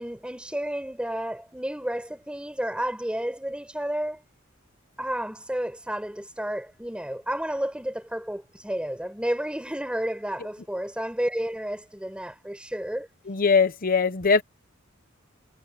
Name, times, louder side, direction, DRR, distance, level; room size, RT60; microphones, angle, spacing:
voice 1, 0.0-4.2 5.0-13.1, equal, 5° right, 6.0 m, -31 dB
voice 2, 13.3-14.4, left 5 dB, 45° left, 0.9 m, -21 dB
head